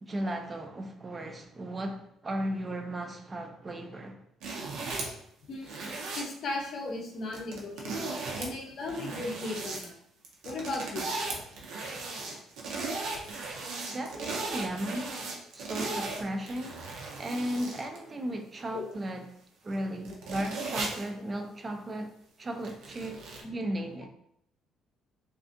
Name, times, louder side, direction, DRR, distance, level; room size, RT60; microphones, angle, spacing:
voice 1, 0.0-4.2 13.9-15.2 15.5-16.8 17.2-19.3 19.6-22.1 22.4-24.1, right 1 dB, 20° right, 0.3 m, -35 dB
sound 1, 4.4-5.2 5.6-6.2 7.3-8.5 8.8-9.8 10.2-18.0 18.6-18.7 19.7-19.8 20.0-21.1 22.6-23.4, right 3 dB, 85° right, 0.6 m, -36 dB
voice 2, 5.5-10.0 10.4-11.1 18.7-18.8 23.4-23.5, left 2 dB, 45° left, 0.5 m, -37 dB
2.5 x 2.4 x 2.5 m
cardioid pair, 150°, 0 cm